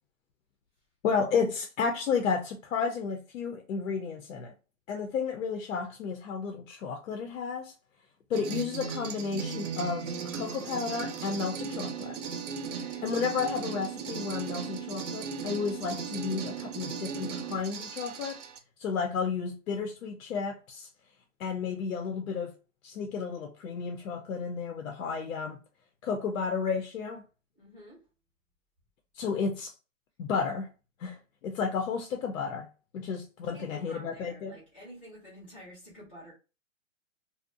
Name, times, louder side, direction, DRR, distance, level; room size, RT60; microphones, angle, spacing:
voice 1, 1.0-4.5 4.9-7.7 8.3-10.1 10.3-12.2 13.0-18.4 18.8-20.9 21.4-22.5 22.8-25.6 26.0-27.2 29.1-29.7 30.2-30.7 31.0-31.2 31.4-32.7 32.9-34.5, left 5 dB, 85° left, 0.6 m, -32 dB
sound 1, 8.3-18.6, right 6 dB, 65° right, 0.6 m, -37 dB
voice 2, 12.6-13.1 27.5-28.1 33.4-36.3, equal, 10° left, 0.4 m, -50 dB
2.7 x 2.0 x 2.5 m
hypercardioid pair, 165°, 40 cm